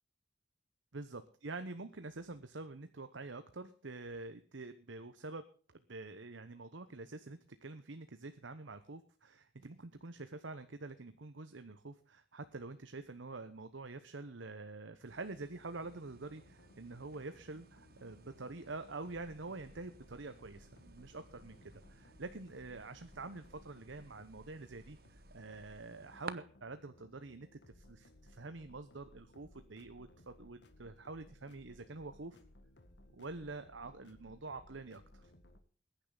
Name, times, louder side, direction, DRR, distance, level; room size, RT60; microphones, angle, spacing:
voice 1, 0.9-5.4 5.7-32.4 33.1-35.2, right 3 dB, 80° right, 10 dB, 1.0 m, -47 dB
sound 1, 15.1-26.3, right 4 dB, 50° right, 1.0 m, -56 dB
sound 2, 15.8-35.6, left 1 dB, 60° left, 1.9 m, -62 dB
21.5 x 10.0 x 3.9 m, 0.40 s
head